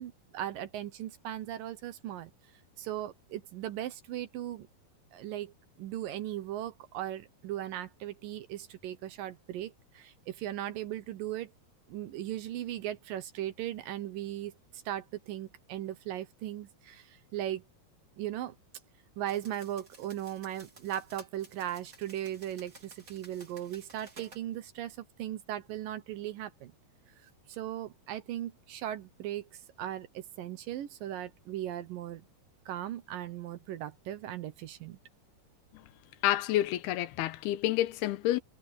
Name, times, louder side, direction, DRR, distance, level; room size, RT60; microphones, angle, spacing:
voice 1, 0.0-2.3 2.8-4.7 5.1-11.5 11.9-17.6 18.2-18.5 19.2-26.7 27.5-32.2 32.7-35.0, right 12 dB, 70° right, 2.5 m, -38 dB
sound 1, 19.3-24.4, right 3 dB, 25° right, 2.9 m, -55 dB
voice 2, 36.2-38.4, left 14 dB, 85° left, 2.8 m, -28 dB
omnidirectional pair, 4.6 m